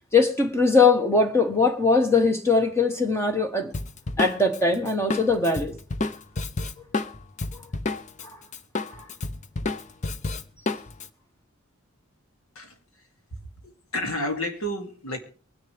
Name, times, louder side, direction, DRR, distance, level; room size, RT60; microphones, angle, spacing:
voice 1, 0.1-3.7 4.2-5.7 9.0-9.1, left 3 dB, 10° left, 1.2 m, -21 dB
Drum kit, 3.7-8.3 8.5-11.1, left 3 dB, 35° left, 0.6 m, -30 dB
voice 2, 13.6-15.2, left 1 dB, 75° left, 2.4 m, -30 dB
23.5 x 10.0 x 3.3 m
head